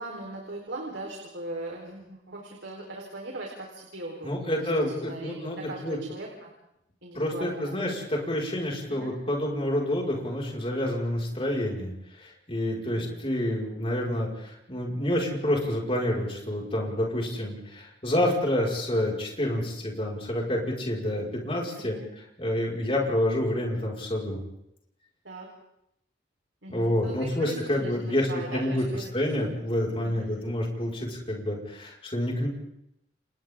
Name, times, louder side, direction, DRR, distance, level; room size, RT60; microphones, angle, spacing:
voice 1, 0.0-4.6 5.1-6.5 7.0-7.8 8.9-9.1 12.8-13.1 21.8-22.1 25.2-25.5 26.6-29.1 30.0-30.3, right 2 dB, 75° right, -1 dB, 4.4 m, -39 dB
voice 2, 4.2-6.0 7.1-22.0 22.4-24.4 26.7-28.8 29.1-32.5, left 1 dB, 30° left, -2 dB, 5.6 m, -28 dB
30.0 x 29.5 x 3.8 m, 0.79 s
head